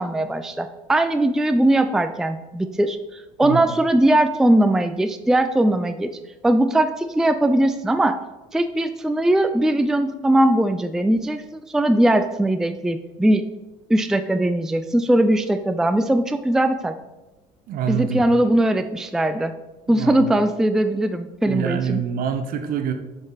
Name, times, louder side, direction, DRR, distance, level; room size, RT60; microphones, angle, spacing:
voice 1, 0.0-6.1 6.4-8.2 8.5-13.4 13.9-16.9 17.9-19.5 19.9-22.0, right 1 dB, 5° right, 9 dB, 0.4 m, -20 dB
voice 2, 17.7-18.2 19.9-20.3 21.5-22.9, right 8 dB, 55° right, 7 dB, 0.9 m, -26 dB
6.9 x 5.3 x 4.0 m, 1.1 s
hypercardioid pair, 75°, 18 cm